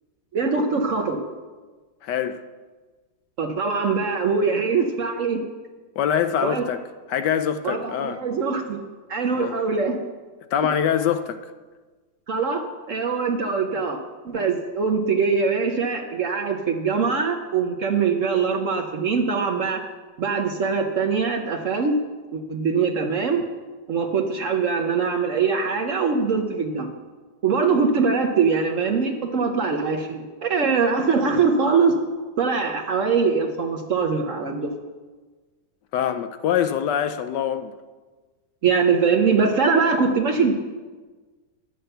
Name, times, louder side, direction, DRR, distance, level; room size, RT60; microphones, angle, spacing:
voice 1, 0.3-1.2 3.4-5.4 6.4-6.6 7.6-8.8 9.1-10.0 12.3-19.8 20.2-22.0 22.3-23.4 23.9-26.9 27.4-31.9 32.4-34.7 38.6-40.5, right 5 dB, 55° right, 1.0 m, -22 dB
voice 2, 2.0-2.4 6.0-6.8 7.1-8.2 9.4-9.6 10.5-11.4 35.9-37.7, left 9 dB, 75° left, 1.1 m, -24 dB
11.0 x 6.7 x 7.8 m
omnidirectional pair, 2.0 m